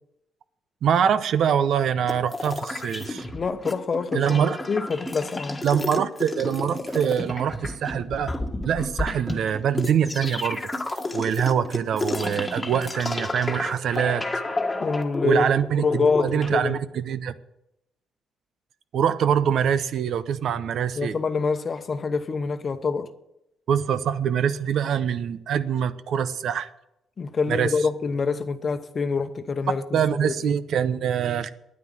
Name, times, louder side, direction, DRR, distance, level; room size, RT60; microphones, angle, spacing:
voice 1, 0.8-3.2 4.1-4.6 5.6-8.3 8.6-10.6 11.1-14.2 15.2-17.3 18.9-21.2 23.7-26.7 27.5-27.7 29.9-31.5, right 8 dB, 70° right, 0.7 m, -24 dB
sound 1, 2.1-3.7 4.0-16.5, left 2 dB, 20° left, 1.5 m, -31 dB
sound 2, 2.7-13.2, right 1 dB, 15° right, 2.7 m, -38 dB
voice 2, 3.3-4.4 4.7-5.6 14.8-15.5 15.8-16.8 21.0-23.1 27.2-30.6, left 4 dB, 40° left, 0.9 m, -26 dB
9.7 x 9.4 x 7.7 m
cardioid pair, 90°, 0 cm